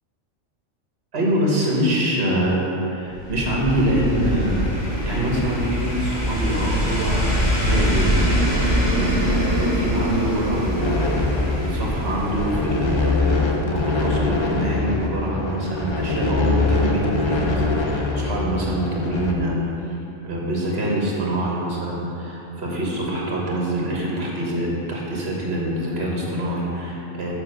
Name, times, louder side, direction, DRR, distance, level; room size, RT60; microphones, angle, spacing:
voice 1, 1.1-8.5 8.9-19.6 19.8-20.0 20.2-27.3, right 1 dB, 60° right, -3 dB, 1.6 m, -25 dB
sound 1, 3.1-13.5 13.8-13.9, equal, 60° left, 1.9 m, -23 dB
sound 2, 10.8-19.3, left 3 dB, 35° left, 0.5 m, -24 dB
7.0 x 4.4 x 6.6 m, 2.9 s
omnidirectional pair, 1.2 m